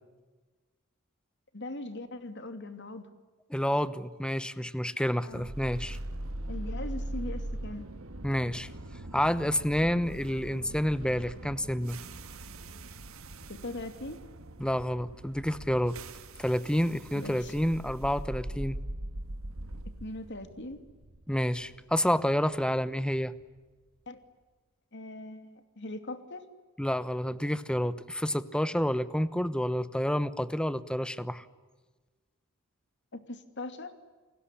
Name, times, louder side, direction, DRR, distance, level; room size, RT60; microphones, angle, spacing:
voice 1, 1.5-3.1 5.2-5.5 6.5-7.9 13.5-14.2 17.1-17.5 20.0-20.8 24.1-24.2 24.9-26.4 33.1-33.9, left 2 dB, 55° left, 9 dB, 2.7 m, -40 dB
voice 2, 3.5-6.0 8.2-8.7 9.1-12.0 14.6-16.0 16.4-18.8 21.3-23.3 26.8-31.4, equal, 5° left, 15 dB, 0.9 m, -29 dB
sound 1, 5.3-23.4, right 1 dB, 80° right, 1.7 m, -41 dB
29.0 x 20.0 x 9.9 m, 1.3 s
head